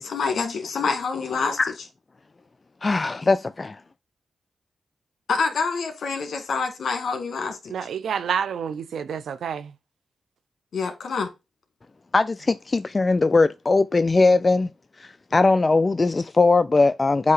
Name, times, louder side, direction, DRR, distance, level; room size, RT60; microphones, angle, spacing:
voice 1, 0.0-1.6 5.3-7.7 10.7-11.3, left 5 dB, 70° left, 1.7 m, -26 dB
voice 2, 2.8-3.8 12.1-14.7 15.0-17.3, left 3 dB, 35° left, 0.4 m, -20 dB
voice 3, 7.7-9.7, right 7 dB, 85° right, 0.7 m, -28 dB
8.2 x 2.9 x 4.7 m
cardioid pair, 55°, 0 cm